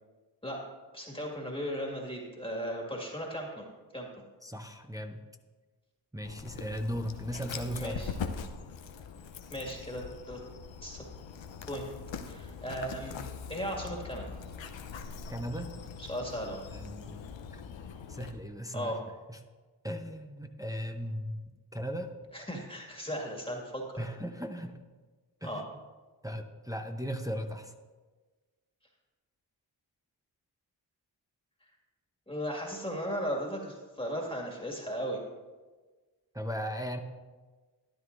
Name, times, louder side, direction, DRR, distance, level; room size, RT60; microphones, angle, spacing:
voice 1, 0.9-3.6 3.9-4.1 7.7-8.2 9.5-10.4 10.8-11.0 11.6-11.9 12.3-13.2 13.5-14.4 16.0-16.6 18.7-19.0 22.3-24.0 25.4-25.6 32.3-35.2, equal, 10° left, -1 dB, 2.0 m, -36 dB
voice 2, 4.4-5.2 6.1-8.0 15.3-15.7 16.7-17.2 17.5-17.6 18.1-18.9 19.3-19.4 19.8-21.5 21.7-22.1 24.0-24.8 25.4-25.6 26.2-27.7 36.3-37.0, equal, 10° right, 4 dB, 0.8 m, -37 dB
Dog, 6.2-18.3, left 6 dB, 75° left, 0.8 m, -42 dB
13.0 x 10.5 x 2.6 m, 1.3 s
cardioid pair, 40°, 46 cm